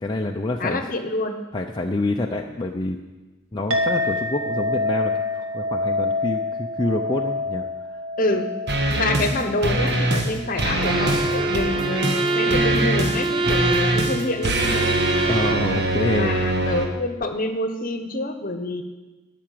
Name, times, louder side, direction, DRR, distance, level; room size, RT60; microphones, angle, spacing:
voice 1, 0.0-0.8 1.5-3.0 3.5-7.7 15.2-16.4, left 2 dB, 20° left, 1 dB, 0.6 m, -27 dB
voice 2, 0.6-1.4 8.2-8.5 8.9-14.8 16.0-18.8, left 2 dB, 45° left, 7 dB, 1.1 m, -26 dB
Chink clink, 3.7-12.4, left 2 dB, 80° right, 1.3 m, -28 dB
sound 1, 8.7-9.3 9.6-10.3 10.6-16.9, right 1 dB, 55° right, 1.6 m, -23 dB
Bowed string instrument, 10.8-15.7, right 3 dB, 25° right, 0.6 m, -25 dB
13.5 x 6.0 x 9.3 m, 1.2 s
head